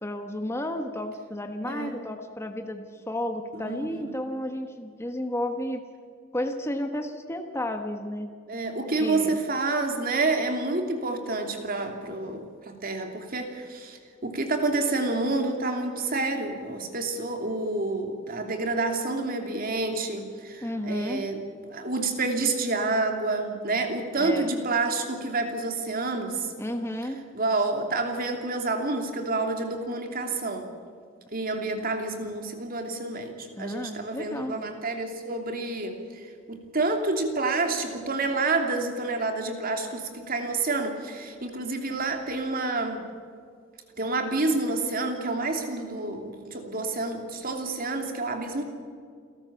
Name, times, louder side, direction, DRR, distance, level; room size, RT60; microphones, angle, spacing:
voice 1, 0.0-5.8 6.3-8.3 9.0-9.4 20.6-21.2 24.2-24.5 26.6-27.2 33.6-34.6, left 1 dB, 15° left, 5 dB, 1.3 m, -32 dB
voice 2, 1.6-2.0 3.5-4.2 8.5-21.4 21.7-26.5 27.3-30.7 31.3-36.0 36.5-43.0 44.0-48.6, right 3 dB, 45° right, 4 dB, 2.9 m, -28 dB
29.0 x 13.0 x 7.1 m, 2.2 s
head